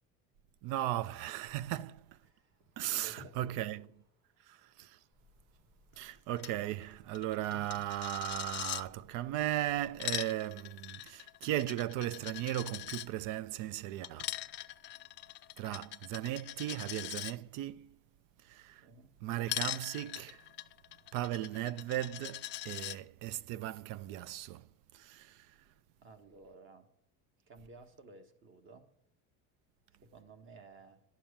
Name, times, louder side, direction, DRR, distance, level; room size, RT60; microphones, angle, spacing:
voice 1, 0.6-2.2 2.8-3.9 4.5-5.0 6.0-14.4 15.6-18.0 18.4-18.9 19.2-20.4 21.1-24.7 24.9-25.5, right 14 dB, 60° right, 0.6 m, -37 dB
sound 1, 1.4-11.0, right 1 dB, 80° right, 3.3 m, -64 dB
voice 2, 2.9-3.9 18.8-19.1 26.0-26.9 27.5-28.9 29.9-31.0, right 3 dB, 35° right, 1.5 m, -56 dB
sound 2, 5.1-10.1, left 1 dB, 20° right, 1.4 m, -66 dB
Coin (dropping), 6.4-6.5 6.8-6.9 7.1-8.8 9.8-13.1 14.0-17.3 19.5-23.0, left 15 dB, 35° left, 0.4 m, -41 dB
11.5 x 7.4 x 8.7 m
cardioid pair, 160°, 35 cm